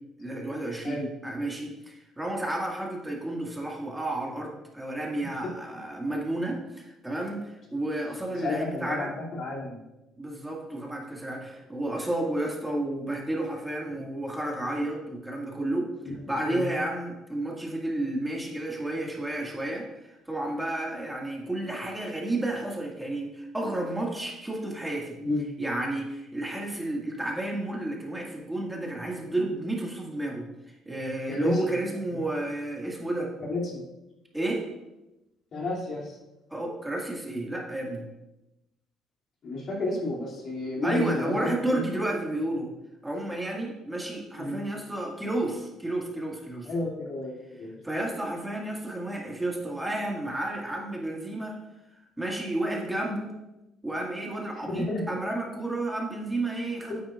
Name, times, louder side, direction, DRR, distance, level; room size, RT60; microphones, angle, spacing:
voice 1, 0.2-9.1 10.2-15.9 16.3-25.2 25.6-30.5 30.9-33.3 34.3-34.6 36.5-38.1 40.8-42.7 43.0-46.7 47.8-51.6 52.2-53.3 53.8-57.1, right 1 dB, 10° right, -1 dB, 2.0 m, -31 dB
voice 2, 8.4-9.8 16.0-16.1 16.5-16.7 25.2-25.4 31.3-31.6 33.4-33.8 35.5-36.2 39.4-41.8 44.3-44.6 46.7-47.3 47.6-47.7 54.7-55.0, left 2 dB, 55° left, -3 dB, 2.8 m, -31 dB
9.4 x 8.7 x 2.5 m, 0.96 s
supercardioid pair, 75°, 0 cm